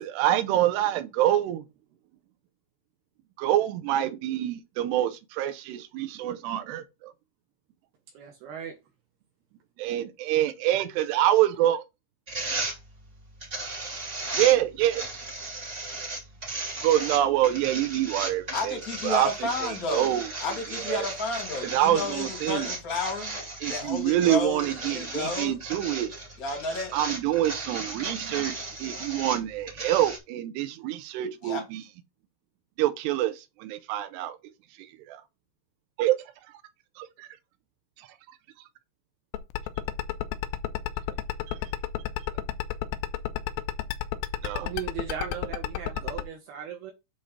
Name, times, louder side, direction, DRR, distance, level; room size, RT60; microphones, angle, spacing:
voice 1, 0.0-1.6 3.4-7.1 9.8-11.8 14.3-15.0 16.8-20.3 20.9-21.1 21.6-22.7 23.6-26.1 26.9-31.8 32.8-34.4 35.1-35.2 36.0-36.2 37.0-37.3 38.0-38.1 41.5-41.6 44.4-44.7, right 13 dB, 90° right, 2.4 m, -26 dB
voice 2, 8.1-8.7 44.6-46.9, right 8 dB, 70° right, 2.6 m, -37 dB
sound 1, 12.3-30.2, right 2 dB, 50° right, 0.8 m, -36 dB
voice 3, 18.5-23.4 23.7-25.6 26.4-27.0 31.4-31.6, left 3 dB, 40° left, 1.2 m, -32 dB
sound 2, 39.3-46.2, left 14 dB, 80° left, 2.8 m, -30 dB
8.7 x 3.3 x 5.8 m
omnidirectional pair, 5.7 m